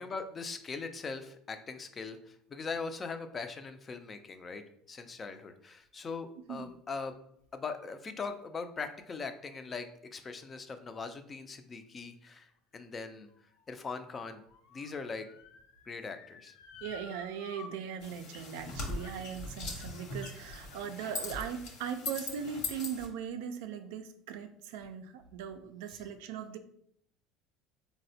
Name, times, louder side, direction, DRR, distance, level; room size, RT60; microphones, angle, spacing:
voice 1, 0.0-4.6 4.9-7.1 7.5-9.9 10.1-13.3 13.7-14.4 14.7-15.3 15.9-16.5 25.9-26.0, left 4 dB, 25° left, 8 dB, 0.3 m, -40 dB
Motor vehicle (road) / Siren, 12.5-17.7 18.0-18.1 19.0-19.3 19.6-21.3 22.0-22.1, left 4 dB, 80° left, 0.5 m, -53 dB
voice 2, 16.8-26.6, right 8 dB, 85° right, 8 dB, 0.3 m, -39 dB
sound 1, 18.0-23.1, left 3 dB, 65° left, 0.9 m, -40 dB
4.0 x 2.1 x 2.7 m, 0.69 s
supercardioid pair, 110°, 0 cm